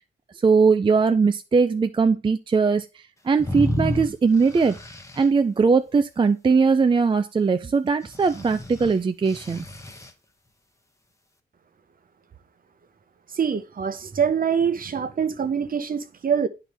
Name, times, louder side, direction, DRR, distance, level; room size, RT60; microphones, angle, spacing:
voice 1, 0.4-2.9 3.3-4.7 5.2-9.7, right 5 dB, 25° right, 0.4 m, -20 dB
sound 1, 3.4-5.3 8.1-10.1, left 1 dB, 15° left, 0.9 m, -31 dB
voice 2, 13.3-16.5, right 7 dB, 50° right, 0.8 m, -24 dB
10.0 x 4.4 x 3.4 m
wide cardioid pair, 110°, 19 cm